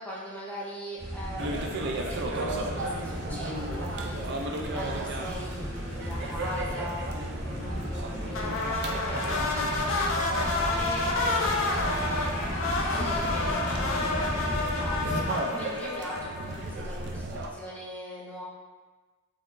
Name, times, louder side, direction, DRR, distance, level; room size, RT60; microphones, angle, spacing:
voice 1, 0.0-15.2 15.5-18.4, equal, 5° left, -7 dB, 0.5 m, -41 dB
sound 1, 1.0-15.3, equal, 15° right, 1.2 m, -35 dB
sound 2, 1.4-17.5, right 2 dB, 55° right, 0.4 m, -36 dB
sound 3, 8.3-16.8, left 2 dB, 65° left, 0.5 m, -29 dB
4.0 x 3.0 x 2.5 m, 1.3 s
head